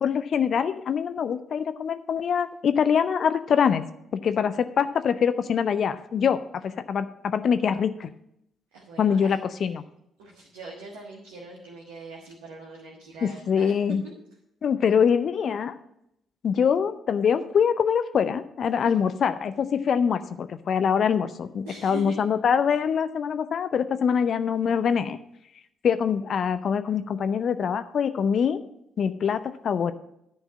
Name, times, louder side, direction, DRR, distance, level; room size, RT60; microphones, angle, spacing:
voice 1, 0.0-3.8 4.2-8.1 9.0-9.8 13.2-14.0 14.6-15.7 16.4-25.2 25.8-28.6 29.0-29.9, left 7 dB, 55° left, 11 dB, 0.5 m, -24 dB
voice 2, 8.7-9.3 10.2-13.7 14.0-14.1 18.8-18.9 21.7-22.2, right 3 dB, 75° right, -3 dB, 1.4 m, -42 dB
10.5 x 4.7 x 7.4 m, 0.78 s
figure-of-eight pair, 40°, 0 cm